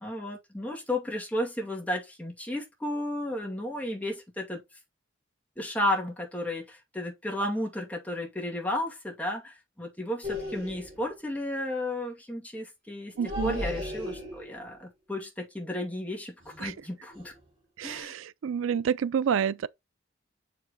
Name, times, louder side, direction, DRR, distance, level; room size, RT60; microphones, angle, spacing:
voice 1, 0.0-4.6 5.6-13.1 13.4-17.3 17.8-18.1, left 1 dB, 5° left, 2.4 m, -33 dB
sound 1, 10.2-11.1 13.1-14.7 16.4-16.8 17.1-17.4 17.8-18.0, left 2 dB, 30° right, 5.3 m, -36 dB
voice 2, 13.2-13.6 16.6-16.7 17.8-19.7, right 7 dB, 90° right, 0.4 m, -28 dB
6.5 x 5.1 x 3.9 m
head